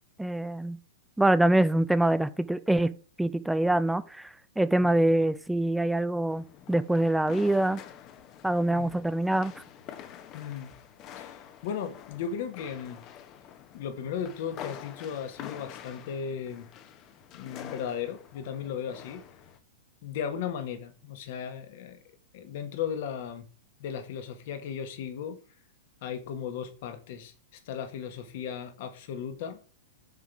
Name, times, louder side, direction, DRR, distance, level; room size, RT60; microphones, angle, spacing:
voice 1, 0.2-0.8 1.2-4.3 4.6-7.8 8.4-9.5, right 1 dB, 5° right, 0.5 m, -25 dB
sound 1, 6.3-19.6, left 10 dB, 35° left, 0.8 m, -47 dB
voice 2, 10.3-10.7 11.1-13.0 13.7-16.7 17.3-19.3 20.0-22.0 22.3-23.4 23.8-25.4 26.0-29.6, left 8 dB, 60° left, 1.4 m, -36 dB
7.3 x 3.8 x 4.7 m
hypercardioid pair, 125°, 0 cm